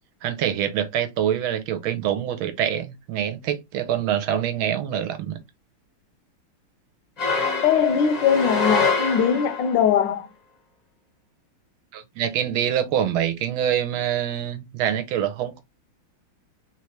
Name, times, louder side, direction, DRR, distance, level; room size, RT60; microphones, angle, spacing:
voice 1, 0.2-5.4 11.9-15.6, right 10 dB, 75° right, 1.6 m, -25 dB
sound 1, 7.2-9.8, left 4 dB, 35° left, 0.6 m, -25 dB
voice 2, 7.6-10.3, left 8 dB, 70° left, 1.2 m, -21 dB
4.0 x 3.2 x 3.0 m
omnidirectional pair, 2.4 m